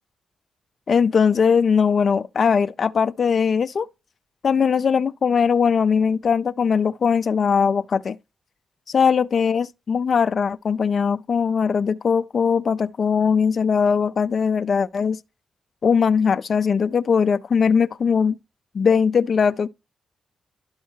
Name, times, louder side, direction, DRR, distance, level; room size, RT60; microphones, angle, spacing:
voice 1, 0.9-3.9 4.4-8.2 8.9-15.2 15.8-18.4 18.7-19.7, left 6 dB, 50° left, 0.3 m, -20 dB
12.0 x 4.3 x 2.7 m
cardioid pair, 115°, 0 cm